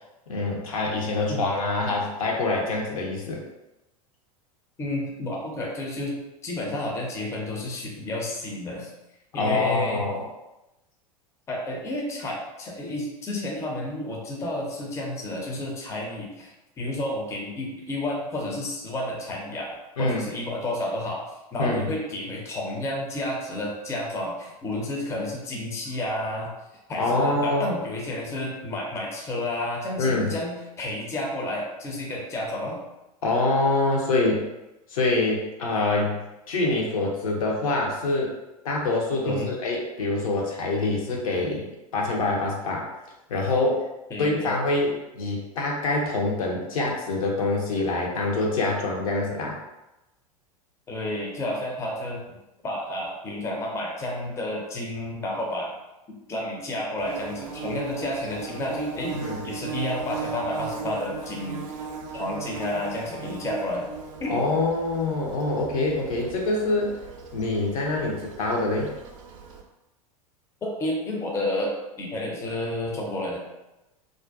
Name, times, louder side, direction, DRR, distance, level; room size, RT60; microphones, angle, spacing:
voice 1, 0.3-3.4 9.4-10.2 20.0-20.2 21.6-21.9 27.0-27.7 30.0-30.3 33.2-34.5 34.9-36.2 36.5-38.3 38.6-42.8 43.3-43.9 44.2-49.5 59.1-59.4 64.3-66.9 67.3-68.9, left 2 dB, 65° left, -1 dB, 0.6 m, -25 dB
voice 2, 4.8-6.1 6.4-8.9 9.3-10.0 11.5-21.2 21.5-26.5 26.9-32.8 39.3-39.5 44.1-44.5 50.9-52.2 52.6-55.7 56.3-61.6 62.1-63.8 64.2-64.4 70.6-73.4, left 1 dB, 15° left, -2 dB, 0.4 m, -31 dB
Bird / Buzz, 57.0-69.6, right 6 dB, 55° right, 0.4 m, -37 dB
2.4 x 2.1 x 2.4 m, 0.98 s
figure-of-eight pair, 85°, 19 cm